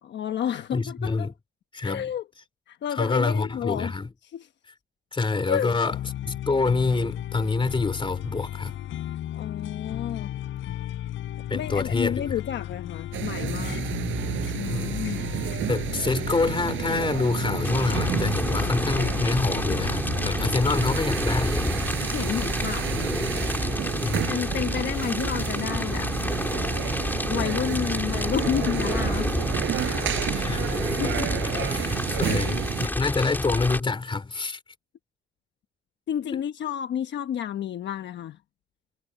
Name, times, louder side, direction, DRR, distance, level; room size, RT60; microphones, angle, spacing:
voice 1, 0.0-1.3 1.8-2.2 2.7-3.9 4.3-4.5 5.5-5.7 9.3-10.3 11.5-13.8 14.5-15.2 22.0-23.2 24.3-26.1 27.3-29.3 29.8-30.1 31.0-31.7 32.2-32.4 36.1-38.4, left 9 dB, 65° left, 1.1 m, -31 dB
voice 2, 0.7-1.3 1.7-2.1 2.9-4.1 5.1-5.9 6.2-8.7 11.5-12.4 14.7-15.1 15.7-21.7 24.0-24.5 30.3-31.2 31.4-34.6 36.3-36.4, left 3 dB, 25° left, 2.7 m, -27 dB
sound 1, 5.5-21.9, left 12 dB, 80° left, 4.0 m, -34 dB
sound 2, 13.1-32.9, right 12 dB, 75° right, 4.8 m, -31 dB
Fire, 17.6-33.8, left 1 dB, 10° left, 3.6 m, -29 dB
cardioid pair, 90°, 20 cm